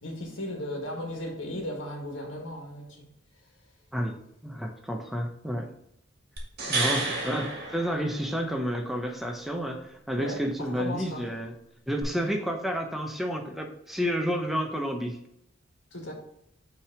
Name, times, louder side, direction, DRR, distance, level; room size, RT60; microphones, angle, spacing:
voice 1, 0.0-3.0 10.2-11.3 12.2-12.3 15.9-16.1, left 1 dB, 65° left, 1.6 m, -36 dB
voice 2, 4.4-5.7 6.7-11.5 11.9-15.2, equal, ahead, 0.6 m, -30 dB
sound 1, 6.4-8.6 12.0-12.1, right 3 dB, 50° right, 1.5 m, -31 dB
5.8 x 3.4 x 5.8 m
head